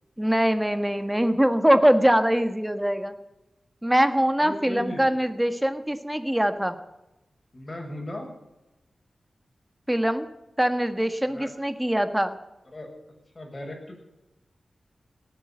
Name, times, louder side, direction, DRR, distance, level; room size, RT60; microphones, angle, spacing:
voice 1, 0.2-3.1 3.8-6.8 9.9-10.3 10.6-12.4, equal, 10° right, 9 dB, 1.5 m, -23 dB
voice 2, 4.4-5.1 7.5-8.3 11.3-11.5 12.6-12.9 13.3-14.0, left 1 dB, 35° left, 1 dB, 6.8 m, -37 dB
18.5 x 8.9 x 7.9 m, 0.98 s
cardioid pair, 65°, 0 cm